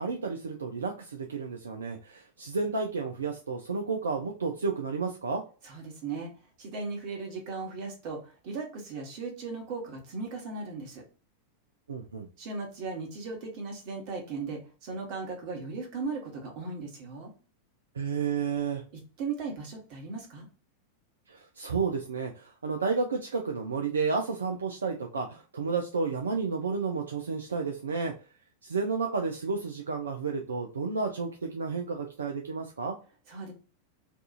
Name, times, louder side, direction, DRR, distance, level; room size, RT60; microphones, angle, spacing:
voice 1, 0.0-5.4 11.9-12.3 17.9-18.8 21.3-28.1 28.6-33.0, right 4 dB, 70° right, 2 dB, 0.4 m, -31 dB
voice 2, 5.6-6.3 6.6-11.0 12.4-17.3 19.2-20.5 33.3-33.5, right 4 dB, 45° right, 1 dB, 1.0 m, -37 dB
2.7 x 2.3 x 2.3 m, 0.37 s
figure-of-eight pair, 90°, 0 cm